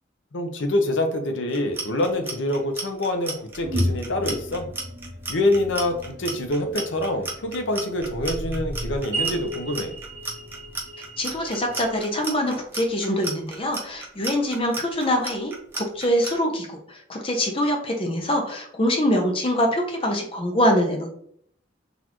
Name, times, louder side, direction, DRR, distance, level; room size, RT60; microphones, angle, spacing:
voice 1, 0.3-4.7 5.3-9.9, left 1 dB, 90° left, 6 dB, 0.7 m, -25 dB
Clock, 1.5-16.3, right 2 dB, 10° right, 0.6 m, -33 dB
sound 1, 3.5-12.0, equal, 65° right, 1.2 m, -33 dB
voice 2, 11.2-21.1, equal, 30° left, 2 dB, 0.7 m, -24 dB
4.0 x 2.6 x 2.9 m, 0.64 s
head